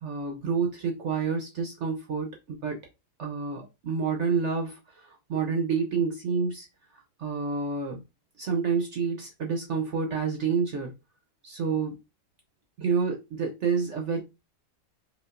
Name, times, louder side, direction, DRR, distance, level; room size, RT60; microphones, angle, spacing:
voice 1, 0.0-2.8 3.2-6.7 6.9-8.0 8.4-10.9 11.4-12.0 12.8-14.2, right 5 dB, 60° right, 2 dB, 0.7 m, -29 dB
4.9 x 2.3 x 2.4 m, 0.25 s
omnidirectional pair, 1.8 m